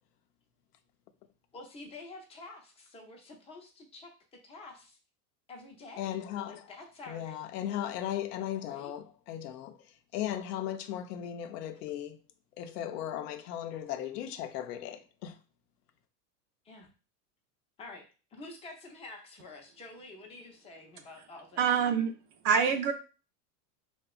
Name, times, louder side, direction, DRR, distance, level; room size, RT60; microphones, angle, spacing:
voice 1, 1.5-4.1 4.4-5.0 5.5-6.2 6.4-7.4 8.6-8.9 16.6-16.9 17.8-18.0 18.3-21.6, left 2 dB, 15° left, 0.4 m, -48 dB
voice 2, 6.0-6.6 7.1-9.8 10.1-12.2 12.6-15.4, left 11 dB, 75° left, 0.5 m, -37 dB
voice 3, 21.6-22.1 22.4-22.9, right 7 dB, 50° right, 0.4 m, -25 dB
2.7 x 2.1 x 2.3 m
hypercardioid pair, 110°, 48 cm